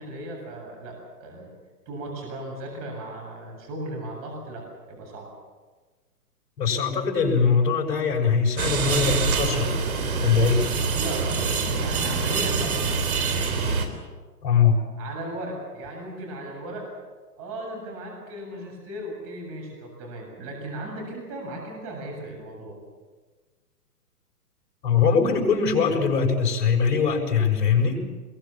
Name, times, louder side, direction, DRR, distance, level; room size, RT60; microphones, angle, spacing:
voice 1, 0.0-1.5 1.9-5.3 10.9-11.3 11.7-12.7 15.0-16.9 17.4-22.8, right 1 dB, 30° right, 0 dB, 7.5 m, -36 dB
voice 2, 6.6-9.8 10.2-10.7 14.4-14.8 24.8-28.0, left 6 dB, 45° left, -1 dB, 6.6 m, -22 dB
sound 1, 8.6-13.9, right 4 dB, 60° right, 3.9 m, -25 dB
25.0 x 22.0 x 7.4 m, 1.4 s
hypercardioid pair, 145°, 48 cm